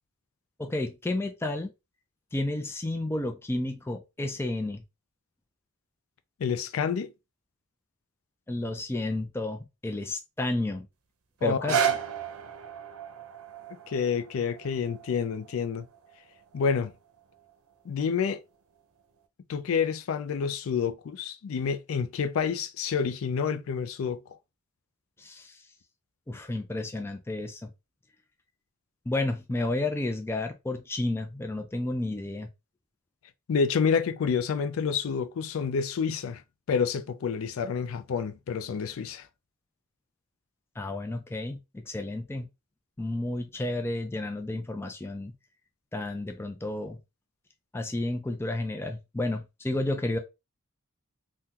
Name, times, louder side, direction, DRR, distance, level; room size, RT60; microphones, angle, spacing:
voice 1, 0.6-1.7 2.3-4.8 8.5-10.9 11.4-11.8 25.2-25.6 26.3-27.7 29.1-32.5 40.8-42.5 43.0-45.3 45.9-47.0 47.7-50.2, left 2 dB, 10° left, 0.4 m, -31 dB
voice 2, 6.4-7.1 11.4-11.9 13.9-15.9 16.5-16.9 17.9-18.4 19.5-24.2 33.5-36.4 36.7-39.3, left 6 dB, 75° left, 0.4 m, -28 dB
sound 1, 11.4-17.5 18.2-18.3, right 9 dB, 85° right, 0.6 m, -34 dB
3.6 x 2.2 x 2.8 m
head